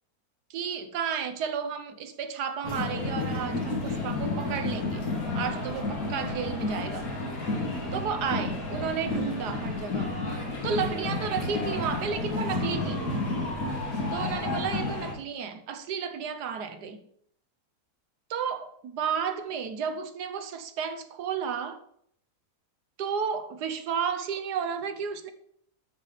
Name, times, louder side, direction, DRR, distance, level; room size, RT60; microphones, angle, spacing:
voice 1, 0.5-5.1 5.3-7.1 7.9-10.1 10.6-13.1 14.1-17.0 18.3-21.8 23.0-25.3, right 7 dB, 85° right, 1.5 m, -32 dB
sound 1, 2.6-15.1, left 2 dB, 65° left, 2.5 m, -31 dB
12.0 x 4.1 x 5.1 m
omnidirectional pair, 1.7 m